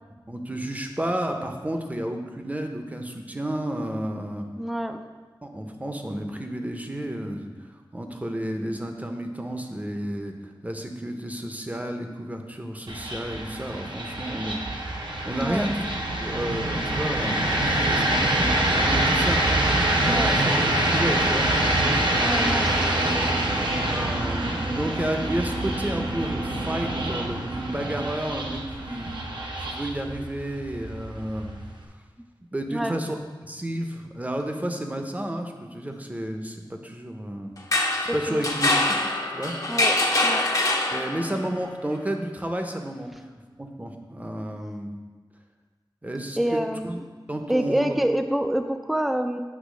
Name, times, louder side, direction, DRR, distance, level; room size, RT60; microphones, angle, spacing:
voice 1, 0.3-4.5 5.4-14.6 15.2-15.8 16.2-19.6 20.1-20.5 20.9-21.5 23.9-29.2 29.6-31.5 32.5-33.2 33.4-37.5 38.1-39.0 39.3-39.5 40.9-43.1 43.6-45.0 46.0-47.0 47.3-48.0, right 1 dB, 20° right, 4 dB, 0.8 m, -31 dB
voice 2, 4.6-5.0 15.4-15.7 20.1-20.4 22.2-23.3 32.2-32.3 32.7-33.0 38.3-38.4 39.7-40.5 46.4-47.0 47.5-49.4, right 1 dB, ahead, 7 dB, 0.4 m, -27 dB
sound 1, 12.9-31.8, right 1 dB, 65° right, 0.9 m, -25 dB
sound 2, 37.6-41.4, left 2 dB, 45° left, 0.8 m, -24 dB
8.3 x 3.0 x 6.2 m, 1.4 s
wide cardioid pair, 70°, 9 cm